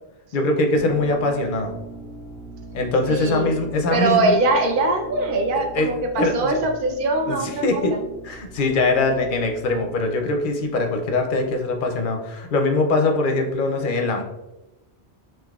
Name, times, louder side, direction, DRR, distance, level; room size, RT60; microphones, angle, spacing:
voice 1, 0.3-1.7 2.7-4.3 5.7-5.9 6.2-6.6 7.3-8.0 8.2-14.2, left 2 dB, 60° left, 3 dB, 0.6 m, -22 dB
sound 1, 0.7-11.6, right 3 dB, 80° right, 1.8 m, -42 dB
voice 2, 3.1-3.5 3.9-7.8, right 2 dB, 60° right, 4 dB, 0.7 m, -22 dB
3.7 x 2.8 x 2.3 m, 1.0 s
omnidirectional pair, 1.1 m